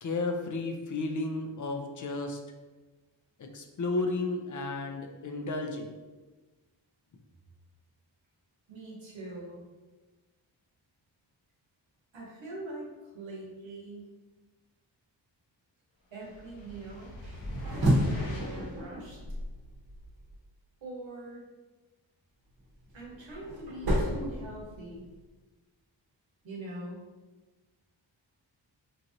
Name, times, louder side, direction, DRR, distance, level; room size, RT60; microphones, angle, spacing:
voice 1, 0.0-2.4 3.4-6.0, left 3 dB, 45° left, 4 dB, 0.4 m, -33 dB
voice 2, 8.7-9.6 12.1-14.1 16.1-17.1 17.9-19.4 20.8-21.4 22.9-25.1 26.4-27.0, right 1 dB, 85° right, -4 dB, 1.0 m, -43 dB
sound 1, 16.2-18.8, left 1 dB, 80° left, 0.8 m, -41 dB
sound 2, 17.2-20.4 22.6-25.1, equal, 55° right, 0.8 m, -31 dB
3.0 x 2.6 x 2.5 m, 1.2 s
cardioid pair, 70°, 46 cm